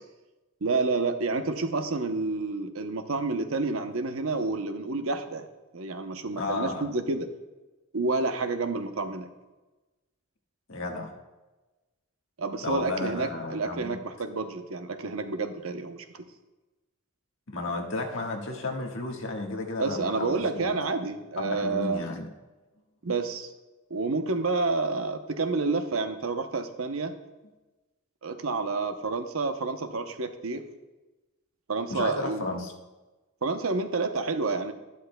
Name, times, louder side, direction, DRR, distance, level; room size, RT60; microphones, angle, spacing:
voice 1, 0.6-5.5 5.7-7.3 7.9-9.3 12.4-16.0 19.8-22.0 23.0-23.5 23.9-27.1 28.2-30.6 31.7-32.5 33.4-34.7, right 3 dB, 70° right, 7 dB, 0.8 m, -29 dB
voice 2, 6.3-6.9 10.7-11.1 12.6-14.0 17.5-20.8 21.4-22.3 31.9-32.7, left 2 dB, 65° left, 1 dB, 1.5 m, -33 dB
12.0 x 11.5 x 2.2 m, 1.1 s
head